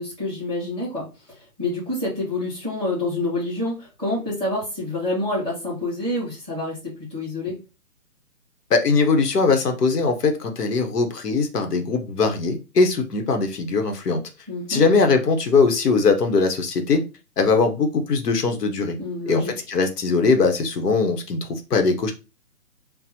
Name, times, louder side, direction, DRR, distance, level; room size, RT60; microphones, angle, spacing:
voice 1, 0.0-7.6 14.5-14.8 19.0-19.5, left 2 dB, 10° left, -11 dB, 0.9 m, -27 dB
voice 2, 8.7-14.2 14.7-17.0 17.4-19.0 19.3-22.1, left 4 dB, 80° left, 6 dB, 0.9 m, -20 dB
3.6 x 2.0 x 2.8 m, 0.29 s
hypercardioid pair, 170°, 47 cm